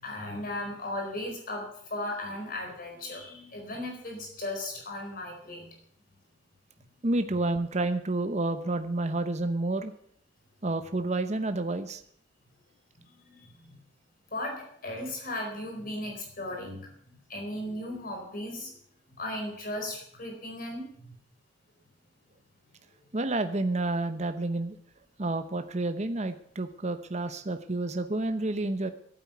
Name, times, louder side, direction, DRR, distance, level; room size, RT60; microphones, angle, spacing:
voice 1, 0.0-1.6 1.9-5.7 13.3-13.5 14.3-16.9 17.3-18.7 19.2-21.2, left 1 dB, 50° left, 1 dB, 4.4 m, -36 dB
voice 2, 7.0-9.9 10.6-12.0 23.1-24.8 25.2-28.9, right 2 dB, 40° right, 8 dB, 0.9 m, -29 dB
11.5 x 9.0 x 9.3 m, 0.66 s
head